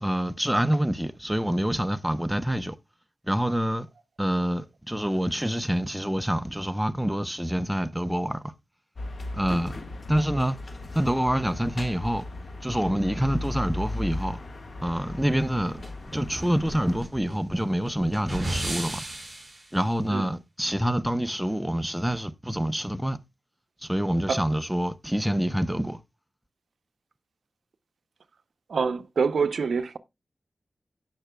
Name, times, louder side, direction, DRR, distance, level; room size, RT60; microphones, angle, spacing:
voice 1, 0.0-2.8 3.3-3.9 4.2-8.4 9.3-9.8 10.1-10.6 10.9-12.2 12.6-14.4 14.8-15.8 16.1-19.0 19.7-23.2 23.8-26.0, equal, 5° right, 0.7 m, -26 dB
sound 1, 9.0-17.0, left 2 dB, 50° left, 1.5 m, -36 dB
sound 2, 15.8-19.6, right 1 dB, 20° right, 4.8 m, -35 dB
voice 2, 28.7-30.0, right 5 dB, 80° right, 0.6 m, -26 dB
17.0 x 5.9 x 2.2 m
wide cardioid pair, 85°, 0 cm